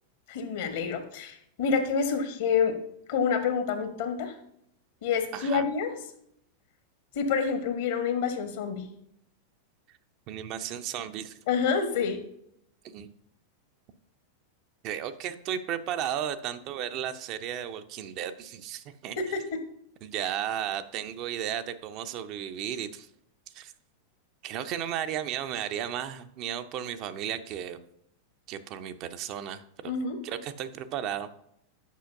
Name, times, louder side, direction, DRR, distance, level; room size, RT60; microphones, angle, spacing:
voice 1, 0.3-2.7 3.1-4.4 5.0-5.9 7.1-8.9 11.5-12.2 19.2-19.4 29.8-30.2, left 6 dB, 55° left, 8 dB, 1.0 m, -27 dB
voice 2, 5.3-5.7 9.9-10.0 10.3-11.4 12.8-13.1 14.8-19.2 20.0-23.1 23.5-23.7 24.4-27.8 28.5-29.9 30.2-31.3, right 10 dB, 40° right, 9 dB, 0.5 m, -34 dB
8.3 x 5.6 x 2.5 m, 0.73 s
figure-of-eight pair, 90°, 0 cm